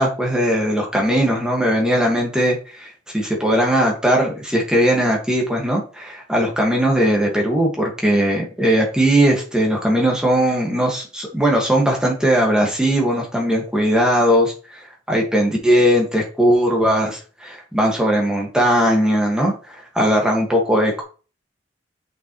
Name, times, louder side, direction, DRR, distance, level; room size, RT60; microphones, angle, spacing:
voice 1, 0.0-2.9 3.1-14.8 15.1-21.0, equal, 5° right, -1 dB, 1.8 m, -19 dB
6.7 x 5.8 x 3.1 m, 0.36 s
head